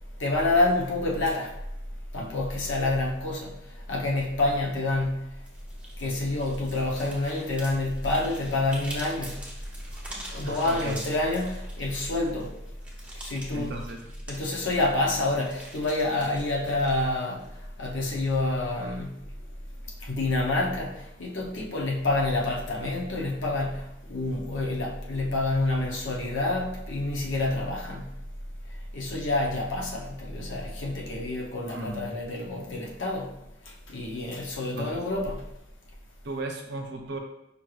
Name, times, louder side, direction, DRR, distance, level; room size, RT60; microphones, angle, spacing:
voice 1, 0.2-1.5 2.1-3.6 3.9-5.4 6.0-9.5 10.1-12.5 13.1-13.7 14.3-17.4 17.8-19.3 20.0-28.2 28.9-33.4 33.9-35.5, left 2 dB, 85° left, -2 dB, 0.7 m, -28 dB
sound 1, 5.4-17.8, right 1 dB, 5° right, 0.7 m, -45 dB
voice 2, 10.4-11.0 13.5-14.1 31.7-32.2 34.8-35.0 36.2-37.2, right 2 dB, 65° right, 3 dB, 0.6 m, -35 dB
5.2 x 3.1 x 2.3 m, 0.84 s
head